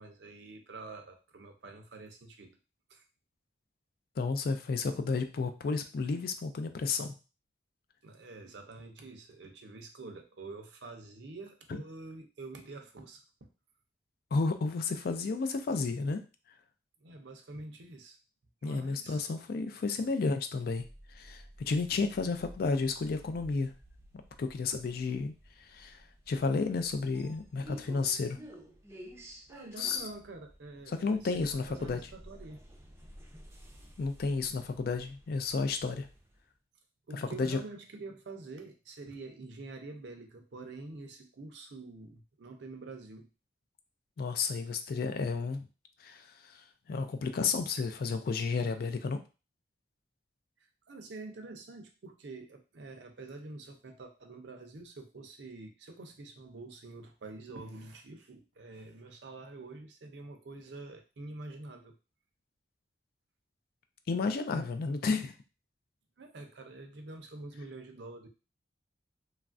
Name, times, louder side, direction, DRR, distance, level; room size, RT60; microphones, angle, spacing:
voice 1, 0.0-2.5 2.9-3.0 8.0-13.5 17.0-18.2 18.6-19.3 29.5-32.6 37.1-43.3 50.9-62.0 66.2-68.3, right 3 dB, 70° right, 4 dB, 0.5 m, -47 dB
voice 2, 4.2-7.1 14.3-16.2 18.6-20.8 21.1-23.7 24.4-25.3 25.7-28.4 29.8-30.0 31.0-32.0 34.0-36.1 37.1-37.6 44.2-45.7 46.0-46.6 46.9-49.2 64.1-65.3, left 4 dB, 55° left, 8 dB, 0.3 m, -32 dB
sound 1, 20.8-36.5, equal, 15° right, 0.5 m, -53 dB
3.1 x 2.4 x 2.4 m, 0.32 s
head